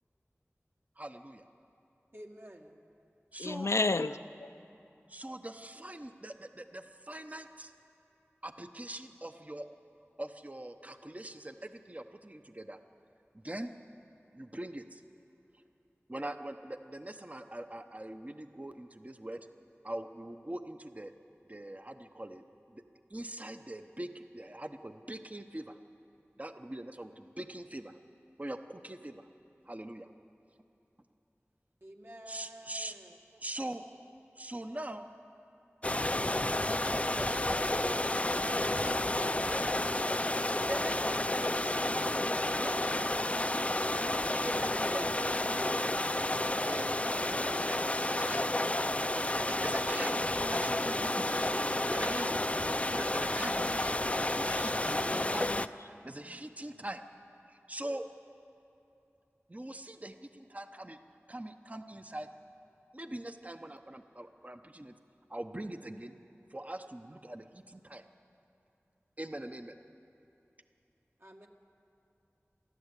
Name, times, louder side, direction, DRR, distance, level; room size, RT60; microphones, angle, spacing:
voice 1, 1.0-1.5 3.3-3.7 5.1-7.7 8.4-9.7 10.2-12.8 13.3-13.7 14.3-15.0 16.1-19.5 19.8-21.1 21.5-22.8 23.1-25.8 26.4-28.0 28.4-29.3 29.6-30.1 32.3-32.9 33.4-33.9 34.4-35.1 36.8-38.3 38.7-39.8 40.7-42.1 42.5-43.7 44.3-46.1 46.7-48.5 49.2-50.2 50.5-51.6 51.9-52.4 52.7-57.0 57.5-58.0 59.5-61.0 61.3-62.3 62.9-64.9 65.3-66.2 66.5-68.0 69.2-69.8, right 1 dB, 30° right, 0.9 m, -43 dB
voice 2, 2.1-2.8 31.8-33.2 52.3-53.0 71.2-71.5, equal, 55° right, 1.9 m, -50 dB
voice 3, 3.4-4.5 55.1-55.6, left 3 dB, 75° left, 0.5 m, -32 dB
sound 1, 35.8-55.7, left 1 dB, 25° left, 0.5 m, -31 dB
30.0 x 12.0 x 8.2 m
wide cardioid pair, 50°, 5 cm